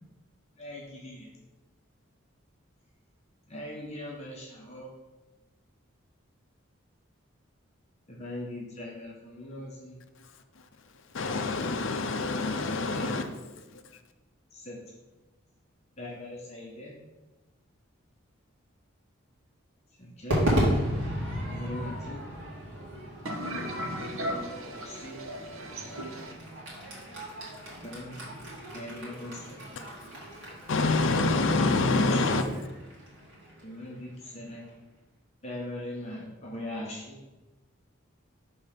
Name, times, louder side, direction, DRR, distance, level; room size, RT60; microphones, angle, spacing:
voice 1, 0.6-1.3 3.5-4.9 8.1-10.0 12.7-13.2 14.5-14.8 16.0-17.0 20.0-20.5 21.5-22.2 24.8-25.2 27.8-28.3 28.7-29.7 31.9-32.2 33.6-34.7 35.4-37.2, left 1 dB, 30° left, -3 dB, 1.0 m, -40 dB
voice 2, 11.1-13.3 13.7-13.8 30.7-32.4, left 3 dB, 65° left, 6 dB, 0.5 m, -26 dB
Crowd / Fireworks, 20.3-34.7, equal, 65° right, 2.2 m, -34 dB
voice 3, 23.2-26.4, equal, 85° right, 3 dB, 1.0 m, -36 dB
5.3 x 3.9 x 5.7 m, 1.1 s
head